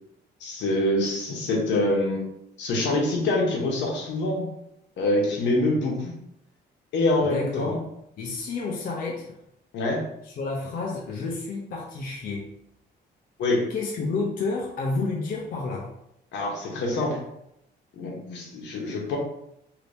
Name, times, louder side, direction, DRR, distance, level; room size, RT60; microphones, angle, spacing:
voice 1, 0.4-2.2 2.6-4.5 5.0-6.1 6.9-7.8 9.7-10.0 13.4-13.6 16.3-17.2 18.0-19.2, left 2 dB, 85° left, -1 dB, 0.9 m, -25 dB
voice 2, 7.2-7.8 8.2-9.3 10.2-12.5 13.7-15.9, left 3 dB, 50° left, -2 dB, 0.5 m, -30 dB
2.8 x 2.6 x 3.3 m, 0.77 s
cardioid pair, 175°, 18 cm